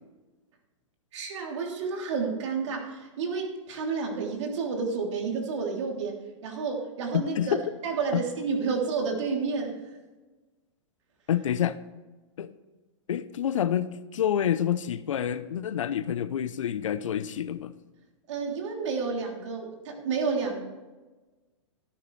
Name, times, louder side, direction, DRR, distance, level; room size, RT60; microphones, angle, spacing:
voice 1, 1.1-7.6 7.8-9.8 18.3-20.7, right 4 dB, 65° right, 1 dB, 3.2 m, -30 dB
voice 2, 11.3-11.8 12.4-12.5 13.1-17.7, left 9 dB, 80° left, 15 dB, 0.7 m, -28 dB
13.0 x 11.5 x 3.3 m, 1.2 s
hypercardioid pair, 120°, 16 cm